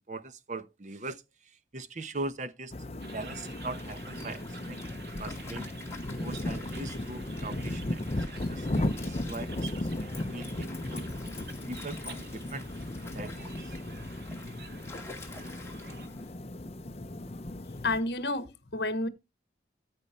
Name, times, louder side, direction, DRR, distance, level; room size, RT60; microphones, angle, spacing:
voice 1, 0.1-2.7 3.1-4.9 5.2-5.7 6.2-8.7 9.0-11.1 11.7-12.7 13.1-13.7, right 2 dB, 40° right, 0.9 m, -41 dB
sound 1, 2.7-18.0, left 1 dB, 35° left, 0.6 m, -36 dB
sound 2, 3.0-16.1, right 5 dB, 60° right, 1.3 m, -51 dB
Stream, 3.3-16.4, left 3 dB, 15° left, 2.2 m, -49 dB
voice 2, 17.8-19.1, left 2 dB, 65° left, 1.2 m, -30 dB
14.0 x 5.4 x 4.3 m
head